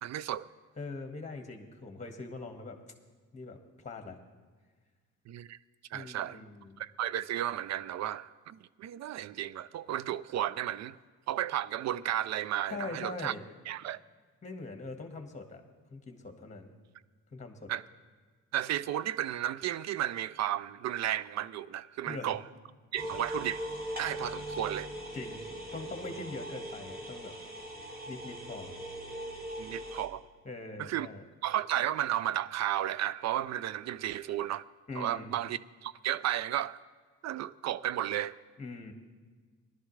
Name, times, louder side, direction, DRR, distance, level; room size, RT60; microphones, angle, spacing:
voice 1, 0.0-0.5 5.3-5.6 5.9-6.4 6.8-11.0 11.3-13.3 13.7-14.0 17.7-17.8 18.5-22.4 22.9-23.7 24.0-24.9 29.6-30.2 30.8-31.1 31.4-34.6 34.9-36.8 37.2-38.3, right 12 dB, 60° right, 0.5 m, -33 dB
voice 2, 0.8-2.8 3.3-4.2 5.9-6.8 12.7-13.4 14.4-15.6 15.9-16.7 17.3-17.7 22.0-22.3 25.1-25.4 25.7-27.3 28.1-28.7 30.4-31.2 34.9-35.4 38.6-38.9, left 3 dB, 25° left, 1.6 m, -42 dB
sound 1, 23.0-30.1, equal, 30° right, 2.0 m, -40 dB
18.5 x 11.5 x 3.2 m
cardioid pair, 90°, 30 cm